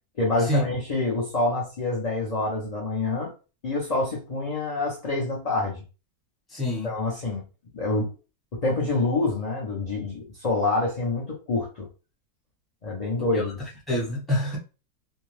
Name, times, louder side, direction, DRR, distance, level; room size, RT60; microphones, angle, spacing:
voice 1, 0.2-3.3 3.6-5.8 6.8-7.4 7.7-8.1 8.5-11.9 12.8-13.5, left 2 dB, 45° left, 0.5 m, -26 dB
voice 2, 6.5-6.9 13.3-14.6, left 1 dB, ahead, 0.7 m, -27 dB
2.6 x 2.1 x 3.1 m
omnidirectional pair, 1.6 m